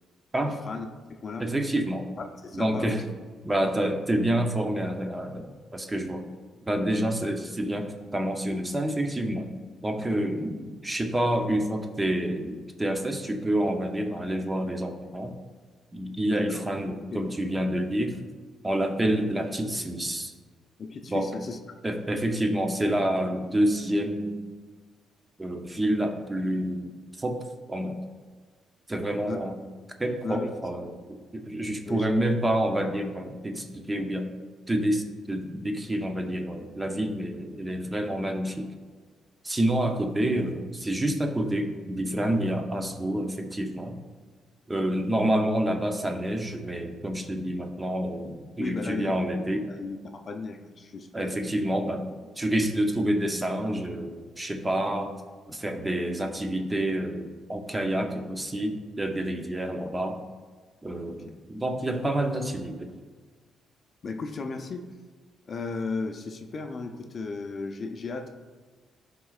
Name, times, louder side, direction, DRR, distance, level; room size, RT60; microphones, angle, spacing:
voice 1, 1.4-2.1 2.5-3.0 3.4-6.3 6.7-9.5 9.8-15.3 15.9-18.2 18.6-20.3 21.1-21.3 21.8-24.4 25.4-28.0 28.9-29.6 30.0-34.3 34.7-38.7 39.4-44.0 44.7-49.7 51.1-52.1 52.4-55.1 55.5-60.2 60.8-63.0, right 1 dB, 15° right, 5 dB, 0.7 m, -28 dB
voice 2, 2.4-3.0 16.2-16.7 20.8-21.6 29.2-29.4 30.2-30.7 31.7-32.4 48.6-49.1 49.7-51.4 61.1-61.2 64.0-64.9 65.5-68.3, left 4 dB, 45° left, 5 dB, 0.5 m, -35 dB
11.0 x 3.7 x 2.4 m, 1.4 s
cardioid pair, 90°, 0 cm